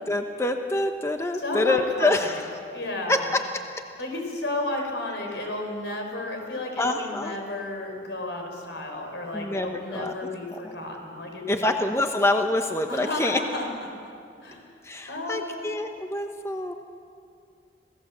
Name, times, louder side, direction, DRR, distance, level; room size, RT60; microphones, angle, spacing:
voice 1, 0.0-2.4 3.1-3.4 6.8-7.3 9.3-10.1 10.5-10.6 11.5-13.4 14.8-16.7, left 2 dB, 15° left, 5 dB, 0.8 m, -26 dB
voice 2, 1.4-2.4 2.7-3.3 4.0-11.7 12.9-13.7 14.4-14.7 15.1-15.7, left 2 dB, 80° left, 2 dB, 4.7 m, -32 dB
27.5 x 17.5 x 7.4 m, 2.4 s
head